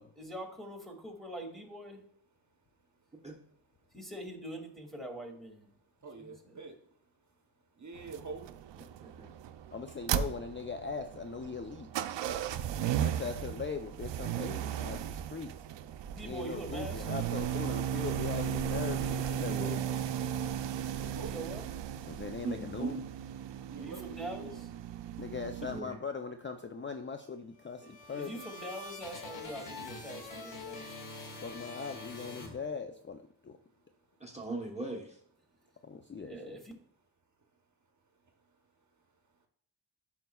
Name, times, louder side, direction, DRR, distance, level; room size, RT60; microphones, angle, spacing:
voice 1, 0.0-2.0 3.9-5.7 6.2-6.6 16.0-17.3 21.2-21.7 23.8-24.7 27.8-31.1 36.2-36.7, right 1 dB, ahead, -1 dB, 2.2 m, -44 dB
voice 2, 6.0-7.1 7.7-8.5 20.6-21.5 23.5-24.6 35.6-35.7 38.2-39.0, right 4 dB, 40° right, 4 dB, 1.0 m, -48 dB
sound 1, 8.0-25.8, right 9 dB, 80° right, 0.5 m, -36 dB
voice 3, 8.8-9.3 19.4-19.8 22.4-23.0 25.6-26.0 34.2-35.2 36.2-36.4, right 3 dB, 15° right, -1 dB, 1.1 m, -40 dB
voice 4, 9.7-12.2 13.0-15.6 16.2-20.0 22.1-23.0 25.2-28.4 31.4-33.6 35.8-36.6, left 5 dB, 25° left, 6 dB, 0.5 m, -40 dB
sound 2, 27.6-33.2, left 3 dB, 80° left, 1.6 m, -45 dB
10.5 x 5.8 x 2.3 m, 0.63 s
cardioid pair, 55°, 43 cm